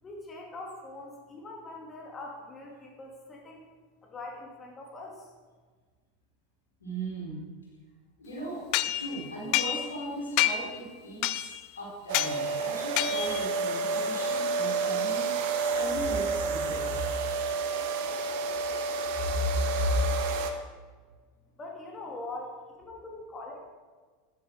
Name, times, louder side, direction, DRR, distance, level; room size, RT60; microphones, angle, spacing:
voice 1, 0.0-3.6 4.0-5.3 21.6-23.7, left 2 dB, 25° left, 0 dB, 2.4 m, -42 dB
voice 2, 6.8-7.4 8.2-15.3 15.7-17.0 19.4-19.5 19.8-19.9, right 1 dB, 85° left, -4 dB, 4.4 m, -37 dB
sound 1, 8.7-10.1 10.4-10.8 11.2-11.7 12.1-12.4 13.0-13.5, left 13 dB, 55° left, 0.5 m, -28 dB
sound 2, 12.1-20.5, right 4 dB, 60° right, 1.2 m, -30 dB
11.0 x 10.5 x 4.7 m, 1.5 s
figure-of-eight pair, 85°, 0 cm